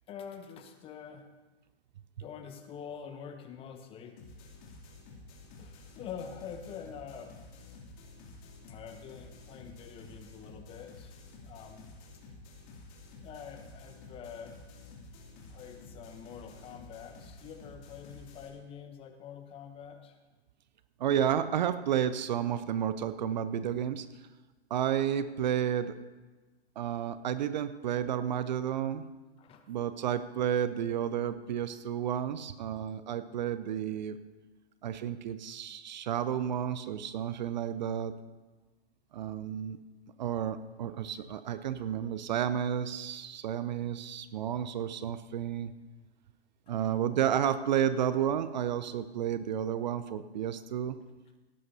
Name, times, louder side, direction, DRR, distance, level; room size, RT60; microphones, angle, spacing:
voice 1, 0.1-1.3 2.2-4.2 5.6-7.3 8.7-11.9 13.2-14.5 15.5-20.2 21.4-21.5 29.4-29.7, left 7 dB, 15° left, 7 dB, 0.8 m, -46 dB
sound 1, 4.2-18.5, left 3 dB, 35° left, 2.8 m, -51 dB
voice 2, 21.0-24.1 24.7-26.0 26.8-29.0 29.7-34.2 34.8-38.1 39.1-39.8 40.2-45.7 46.7-51.0, right 9 dB, 45° right, 13 dB, 0.6 m, -31 dB
17.5 x 11.0 x 2.7 m, 1.2 s
figure-of-eight pair, 120°, 32 cm